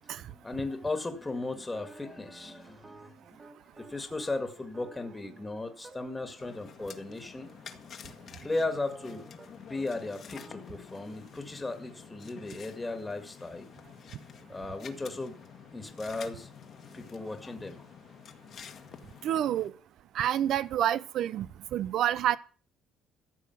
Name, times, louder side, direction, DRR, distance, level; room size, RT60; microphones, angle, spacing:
voice 1, 0.0-3.4 3.7-7.5 8.3-9.2 9.6-13.7 14.5-15.3 15.7-16.5 16.9-17.9, left 2 dB, 10° left, 1.9 m, -36 dB
sound 1, 1.6-6.9 7.4-7.6 8.1-9.5 9.7-9.9 10.1-10.7, right 3 dB, 20° right, 1.7 m, -52 dB
sound 2, 6.4-19.7, left 7 dB, 45° left, 1.6 m, -49 dB
voice 2, 19.2-19.7 20.1-21.5 21.7-22.4, right 11 dB, 60° right, 0.7 m, -28 dB
14.0 x 7.0 x 9.3 m
cardioid pair, 155°, 0 cm